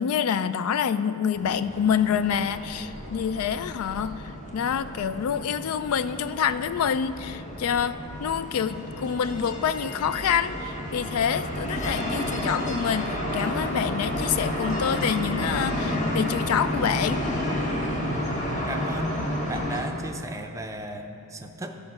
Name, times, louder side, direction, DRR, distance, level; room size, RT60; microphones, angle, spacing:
voice 1, 0.0-17.3, left 7 dB, 75° left, 13 dB, 0.3 m, -27 dB
sound 1, 1.3-19.8, left 1 dB, 35° left, 1.2 m, -31 dB
voice 2, 18.0-19.2 19.5-21.8, right 1 dB, 15° right, 4 dB, 0.5 m, -35 dB
14.0 x 5.2 x 6.0 m, 2.7 s
head